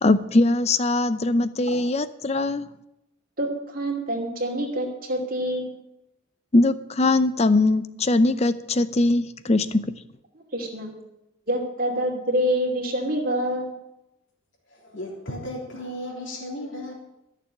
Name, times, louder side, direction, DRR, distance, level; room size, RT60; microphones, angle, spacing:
voice 1, 0.0-2.7 6.5-9.9, left 2 dB, 30° left, 14 dB, 0.6 m, -21 dB
voice 2, 3.4-5.7 10.5-10.9 11.5-13.7, equal, 40° right, 1 dB, 2.6 m, -26 dB
voice 3, 14.7-16.9, left 1 dB, 60° left, -1 dB, 3.3 m, -35 dB
14.5 x 6.9 x 8.7 m, 0.88 s
head